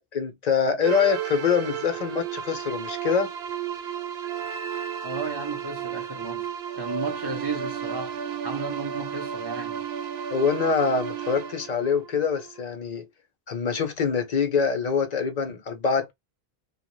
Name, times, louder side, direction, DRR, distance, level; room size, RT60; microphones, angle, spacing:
voice 1, 0.0-3.3 10.3-13.1 13.5-16.1, left 6 dB, 45° left, 0.7 m, -25 dB
sound 1, 0.8-12.6, right 8 dB, 90° right, 0.9 m, -33 dB
voice 2, 5.0-6.5 6.7-9.8, right 4 dB, 30° right, 0.6 m, -34 dB
2.9 x 2.2 x 3.0 m
omnidirectional pair, 1.0 m